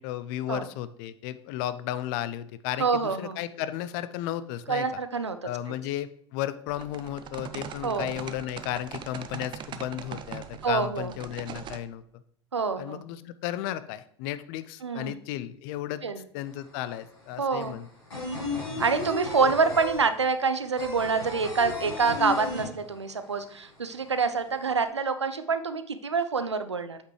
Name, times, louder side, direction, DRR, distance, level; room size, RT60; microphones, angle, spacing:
voice 1, 0.0-4.9 5.4-12.2 12.8-16.0 16.3-17.9 18.7-18.9, left 12 dB, 55° left, 14 dB, 0.5 m, -34 dB
voice 2, 2.8-3.4 4.7-5.4 7.8-8.1 10.6-11.1 12.5-13.0 14.8-15.2 16.0-16.2 17.4-17.7 18.8-27.0, right 4 dB, 90° right, 10 dB, 0.5 m, -26 dB
sound 1, 6.7-11.8, right 8 dB, 35° right, 0.6 m, -41 dB
sound 2, 16.4-16.5 16.7-23.3 23.6-23.7 24.0-24.8, left 3 dB, 85° left, 3.1 m, -34 dB
7.9 x 5.9 x 3.2 m, 0.66 s
figure-of-eight pair, 75°, 14 cm